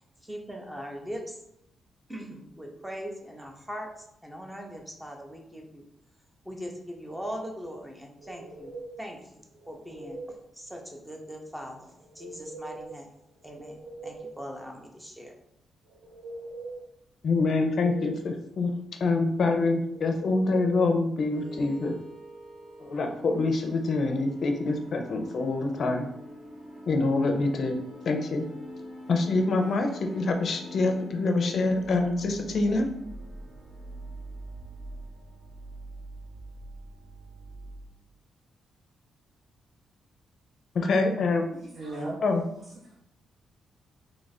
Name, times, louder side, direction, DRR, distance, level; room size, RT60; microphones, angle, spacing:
voice 1, 0.2-1.4 2.1-5.8 6.5-13.1 13.4-15.3, equal, 5° right, 1 dB, 0.6 m, -41 dB
sound 1, 8.2-9.0 9.5-10.4 12.0-13.0 13.3-14.4 15.8-16.9 17.3-18.3 19.9-20.9, right 2 dB, 90° right, 0.6 m, -42 dB
voice 2, 17.2-18.7 19.0-22.0 22.8-26.1 26.9-28.5 29.1-32.9 40.7-41.5 42.2-42.4, left 3 dB, 55° left, 5 dB, 0.5 m, -26 dB
sound 2, 21.3-37.9, right 1 dB, 40° right, 1.1 m, -45 dB
voice 3, 41.5-42.2 42.9-43.0, right 2 dB, 55° right, -4 dB, 0.7 m, -36 dB
3.2 x 2.4 x 4.0 m, 0.81 s
cardioid pair, 130°, 0 cm